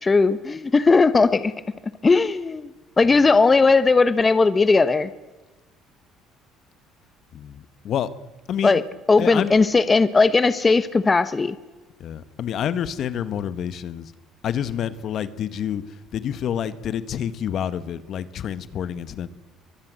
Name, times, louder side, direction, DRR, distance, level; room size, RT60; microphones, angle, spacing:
voice 1, 0.0-1.5 2.0-2.7 3.0-5.1 8.6-8.8 9.1-11.5, left 4 dB, 25° left, 14 dB, 1.1 m, -17 dB
voice 2, 7.3-8.1 8.5-8.8 9.2-9.5 12.0-14.1 14.4-15.8 16.1-19.3, left 9 dB, 55° left, 14 dB, 1.5 m, -28 dB
24.5 x 20.5 x 7.7 m, 1.1 s
supercardioid pair, 95°, 0 cm